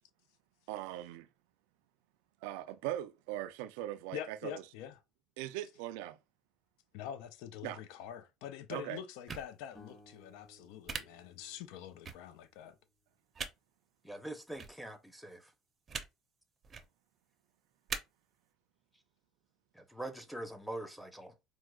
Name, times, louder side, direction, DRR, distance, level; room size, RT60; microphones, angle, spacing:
voice 1, 0.7-1.3 2.4-4.6 5.4-6.2 7.6-7.8 8.7-9.0, right 13 dB, 80° right, 0.3 m, -40 dB
voice 2, 4.1-4.9 6.9-12.7, left 10 dB, 75° left, 0.4 m, -45 dB
sound 1, 9.3-9.4 10.9-11.0 12.0-12.1 13.3-13.5 14.6-14.7 15.9-16.1 16.6-16.8 17.9-18.0, right 5 dB, 35° right, 0.6 m, -39 dB
sound 2, 9.7-12.9, left 2 dB, 20° left, 1.2 m, -61 dB
voice 3, 14.0-15.4 19.8-21.3, right 1 dB, ahead, 0.7 m, -43 dB
4.5 x 2.0 x 2.3 m
supercardioid pair, 95°, 0 cm